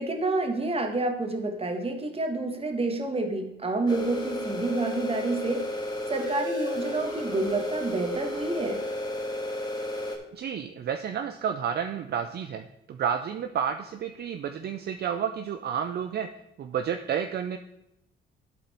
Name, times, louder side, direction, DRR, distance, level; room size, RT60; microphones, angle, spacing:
voice 1, 0.0-5.6 6.1-8.8, right 2 dB, 30° right, 5 dB, 1.4 m, -28 dB
sound 1, 3.9-10.2, left 1 dB, 20° left, 1.8 m, -33 dB
voice 2, 10.3-16.3 16.6-17.6, right 8 dB, 55° right, 8 dB, 0.5 m, -31 dB
12.5 x 4.3 x 4.2 m, 0.83 s
cardioid pair, 90°, 20 cm